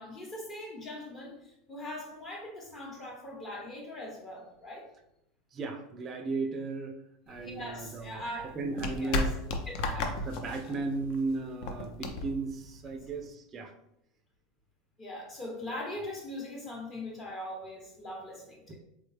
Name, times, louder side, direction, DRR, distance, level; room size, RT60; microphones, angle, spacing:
voice 1, 0.0-4.8 7.3-8.5 9.0-9.3 9.7-10.1 10.5-10.7 15.0-18.8, left 1 dB, 30° left, -1 dB, 0.9 m, -41 dB
voice 2, 5.5-7.0 7.3-8.2 8.5-9.4 9.8-13.7 18.7-18.8, right 3 dB, 25° right, 4 dB, 0.4 m, -35 dB
sound 1, 7.3-13.3, left 2 dB, 60° left, 0.5 m, -35 dB
3.5 x 2.1 x 3.2 m, 0.81 s
supercardioid pair, 130°, 0 cm